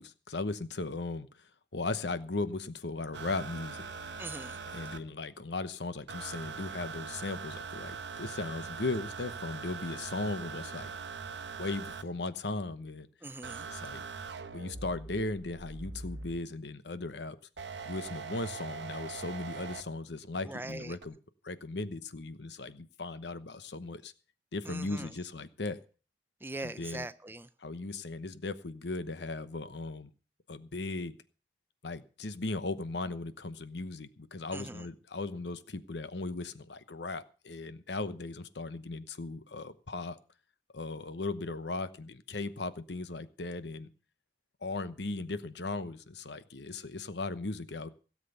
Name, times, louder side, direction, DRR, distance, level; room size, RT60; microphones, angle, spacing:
voice 1, 0.0-3.9 4.7-10.9 11.6-13.1 13.7-14.0 14.5-17.4 17.8-21.2 21.4-24.1 24.5-25.8 26.6-27.1 27.6-30.1 30.5-31.2 31.8-40.2 40.7-43.9 44.6-47.9, left 3 dB, 80° left, 1.0 m, -37 dB
sound 1, 3.1-5.0 6.1-12.0 13.4-16.4 17.6-19.8 21.0-21.1, right 5 dB, 85° right, 1.0 m, -42 dB
voice 2, 4.2-4.6 13.2-13.7 20.5-20.9 24.7-25.1 26.4-27.5 34.5-34.8, right 2 dB, 10° right, 0.6 m, -41 dB
16.5 x 7.6 x 6.8 m
head